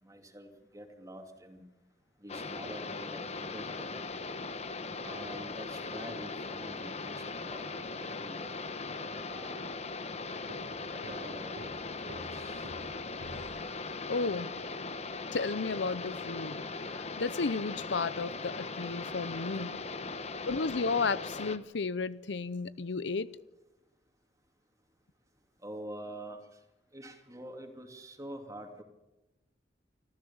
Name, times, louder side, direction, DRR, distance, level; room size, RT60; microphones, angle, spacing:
voice 1, 0.0-1.7 2.2-3.9 5.0-8.7 9.3-9.8 10.9-11.6 12.0-12.7 20.1-20.2 25.6-26.6 26.9-28.8, right 1 dB, 20° right, 4 dB, 2.7 m, -46 dB
sound 1, 2.3-21.6, left 3 dB, 40° left, 1.1 m, -39 dB
sound 2, 10.5-14.2, equal, 75° right, 2.8 m, -50 dB
voice 2, 14.1-14.5 15.3-16.6 16.9-19.8 20.4-23.3, left 4 dB, 80° left, 17 dB, 0.7 m, -33 dB
25.5 x 14.5 x 7.2 m, 1.0 s
head